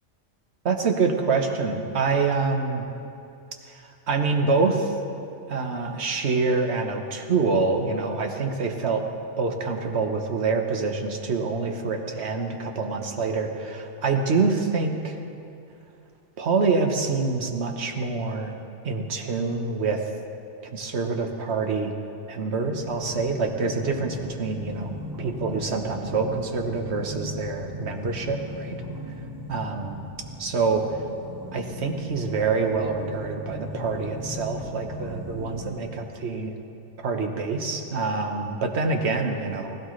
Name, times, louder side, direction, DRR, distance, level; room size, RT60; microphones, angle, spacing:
voice 1, 0.6-2.8 3.7-4.9 5.5-9.0 9.4-15.2 16.4-18.5 18.8-20.0 20.6-21.9 22.3-28.8 29.5-30.0 30.4-30.8 31.5-36.5 37.0-39.8, right 4 dB, 60° right, 4 dB, 1.3 m, -26 dB
sound 1, 22.8-35.8, left 1 dB, 15° right, 1.5 m, -38 dB
18.0 x 16.5 x 3.2 m, 2.6 s
omnidirectional pair, 1.3 m